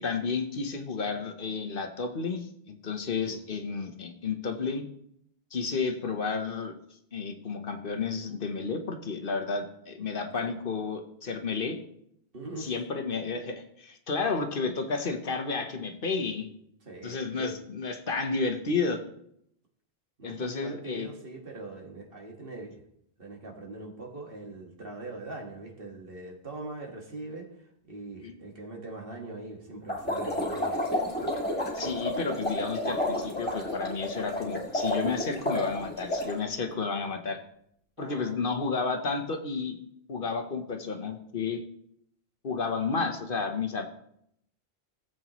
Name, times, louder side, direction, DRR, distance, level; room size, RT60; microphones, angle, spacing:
voice 1, 0.0-4.8 5.5-6.7 7.1-11.8 12.6-16.5 17.0-19.0 20.2-21.1 28.2-28.3 31.7-37.4 38.0-39.8 40.1-41.6 42.4-43.9, left 4 dB, 60° left, 6 dB, 1.1 m, -31 dB
voice 2, 12.3-12.7 16.9-17.6 20.2-22.8 23.2-27.5 27.8-30.8 31.2-31.3 38.0-38.4, right 2 dB, 65° right, 1 dB, 1.9 m, -42 dB
sound 1, 29.9-36.4, left 1 dB, 10° left, 2.4 m, -31 dB
17.0 x 7.8 x 3.0 m, 0.73 s
omnidirectional pair, 1.0 m